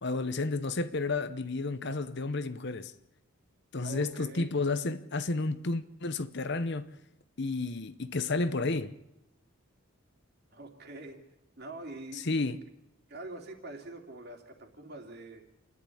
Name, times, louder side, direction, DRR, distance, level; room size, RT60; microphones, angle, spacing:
voice 1, 0.0-2.9 3.7-6.9 7.4-8.9 12.2-12.6, left 3 dB, 50° left, 0.9 m, -31 dB
voice 2, 3.8-4.5 10.5-11.2 11.6-12.5 13.1-15.5, right 2 dB, 45° right, 2.9 m, -45 dB
28.0 x 11.0 x 10.0 m
head